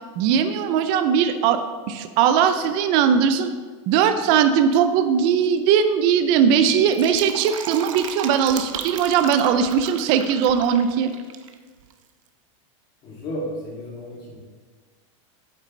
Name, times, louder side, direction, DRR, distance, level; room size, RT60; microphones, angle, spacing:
voice 1, 0.2-1.6 1.9-3.5 3.9-11.1, right 7 dB, 30° right, 9 dB, 0.4 m, -19 dB
sound 1, 6.7-8.8, right 4 dB, 45° right, 1.0 m, -42 dB
Fill (with liquid), 6.7-11.5 11.8-11.9, right 8 dB, 75° right, 0.8 m, -35 dB
voice 2, 13.0-14.4, equal, 25° left, -4 dB, 2.3 m, -33 dB
8.5 x 7.9 x 3.2 m, 1.4 s
supercardioid pair, 175°, 17 cm